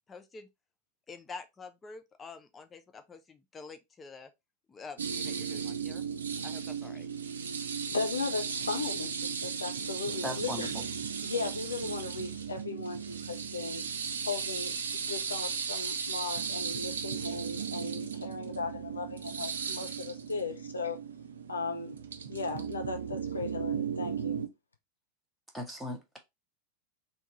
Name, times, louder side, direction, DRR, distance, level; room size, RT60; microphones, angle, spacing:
voice 1, 0.1-0.5 1.1-4.3 4.7-6.0 6.4-7.1, left 4 dB, 20° left, 0.6 m, -47 dB
sound 1, 5.0-24.5, right 6 dB, 65° right, 0.6 m, -36 dB
voice 2, 7.9-10.7 11.2-13.9 14.3-21.0 21.5-22.0 22.3-24.4, left 4 dB, 75° left, 0.7 m, -37 dB
voice 3, 10.2-10.9 25.5-26.2, equal, ahead, 1.2 m, -37 dB
3.5 x 2.9 x 4.1 m
figure-of-eight pair, 90°, 0 cm